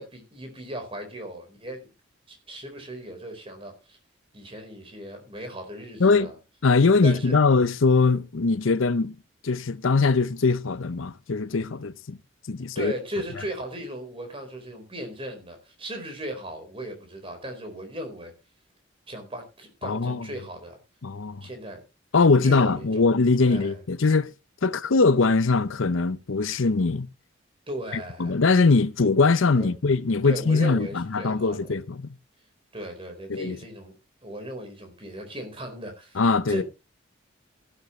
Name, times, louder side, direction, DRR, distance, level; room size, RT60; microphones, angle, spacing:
voice 1, 0.0-1.8 2.3-4.0 4.3-6.3 7.0-7.3 12.7-18.3 19.1-20.8 21.4-21.8 22.4-23.0 23.5-23.8 27.7-28.4 29.5-29.7 30.2-31.6 32.7-33.9 34.2-36.2 36.5-36.6, right 1 dB, 25° right, 4.4 m, -37 dB
voice 2, 6.0-6.3 6.6-9.1 9.4-12.2 12.5-12.9 19.8-20.3 21.0-21.5 22.1-24.3 24.6-27.1 27.9-32.1 33.3-33.6 36.1-36.6, left 4 dB, 75° left, 0.7 m, -22 dB
14.5 x 12.0 x 3.2 m
head